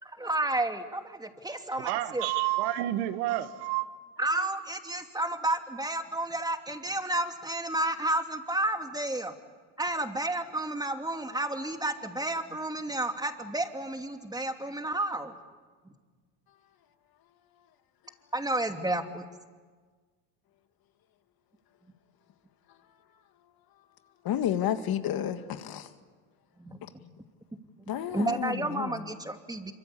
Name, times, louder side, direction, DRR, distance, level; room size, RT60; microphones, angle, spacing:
voice 1, 0.0-2.3 4.2-9.3 9.8-15.4 18.3-19.3 26.6-26.8 27.8-29.7, right 1 dB, 10° right, 2.8 m, -31 dB
voice 2, 1.8-3.9, right 14 dB, 80° right, 1.7 m, -29 dB
voice 3, 24.2-25.9 26.8-26.9 27.9-29.1, left 10 dB, 50° left, 2.1 m, -31 dB
26.0 x 24.5 x 8.6 m
supercardioid pair, 85°, 45 cm